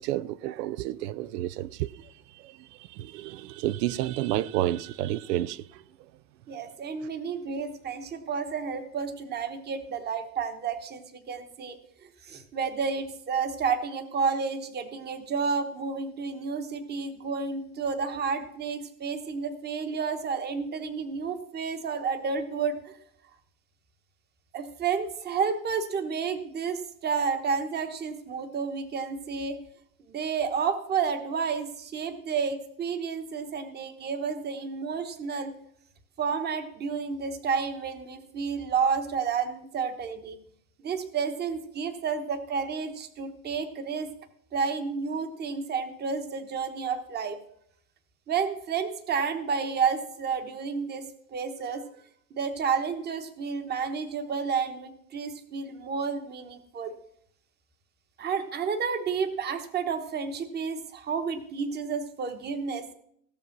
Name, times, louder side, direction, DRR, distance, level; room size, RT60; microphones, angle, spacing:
voice 1, 0.0-5.8, right 14 dB, 85° right, 0.6 m, -31 dB
voice 2, 6.5-22.9 24.5-29.6 30.1-35.5 36.2-40.4 40.8-44.1 44.5-47.4 48.3-51.1 51.3-51.9 52.3-56.9 58.2-62.9, right 5 dB, 20° right, 1.1 m, -31 dB
16.0 x 6.8 x 5.9 m
supercardioid pair, 150°, 47 cm